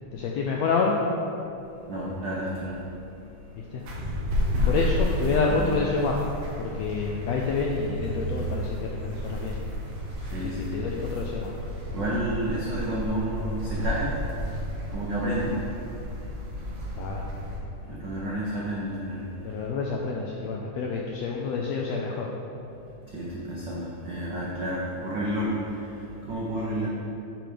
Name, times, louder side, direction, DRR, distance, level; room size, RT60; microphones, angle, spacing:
voice 1, 0.1-0.9 3.6-3.8 4.7-6.2 6.6-9.5 10.7-11.5 17.0-17.2 19.4-22.3, left 4 dB, 80° left, -1 dB, 1.5 m, -28 dB
voice 2, 1.8-3.8 4.3-4.7 5.6-5.7 10.2-10.8 11.9-17.1 17.7-19.6 23.0-26.9, right 1 dB, 85° right, -5 dB, 0.9 m, -32 dB
sound 1, 3.8-17.6, left 1 dB, 60° right, 2.6 m, -31 dB
9.0 x 5.0 x 5.1 m, 2.8 s
omnidirectional pair, 3.7 m